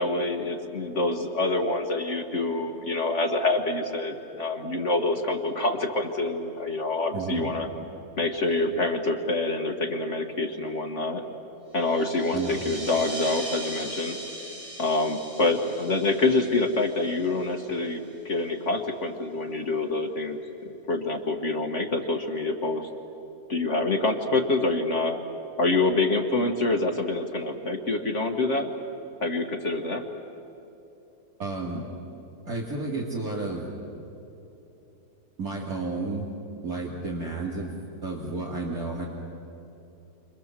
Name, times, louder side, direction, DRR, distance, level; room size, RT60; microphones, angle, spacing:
voice 1, 0.0-7.7 8.2-11.2 11.7-14.2 14.8-22.9 23.5-25.2 25.6-28.7 29.2-30.0, left 2 dB, 50° left, 3 dB, 1.7 m, -26 dB
voice 2, 7.1-7.5 12.3-12.6 31.4-31.9 32.5-33.7 35.4-36.3 36.6-37.7 38.0-39.0, right 3 dB, 60° right, -4 dB, 3.1 m, -31 dB
sound 1, 11.8-17.9, right 1 dB, 90° right, 5.5 m, -40 dB
29.5 x 25.5 x 7.4 m, 3.0 s
omnidirectional pair, 1.7 m